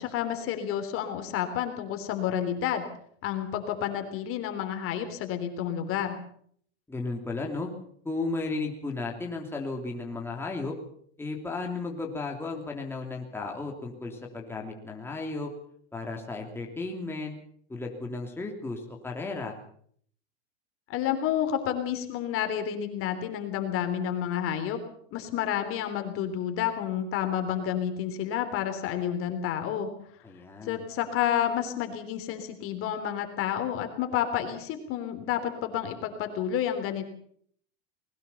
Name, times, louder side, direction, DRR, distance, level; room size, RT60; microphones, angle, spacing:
voice 1, 0.0-2.8 3.2-6.2 20.9-24.8 25.1-29.9 30.7-37.0, left 10 dB, 40° left, 7 dB, 3.5 m, -30 dB
voice 2, 6.9-7.7 8.0-10.7 11.2-15.5 15.9-17.4 17.7-19.6 30.2-30.9, left 3 dB, 5° left, 0 dB, 3.1 m, -34 dB
21.0 x 18.0 x 7.0 m, 0.62 s
supercardioid pair, 140°, 32 cm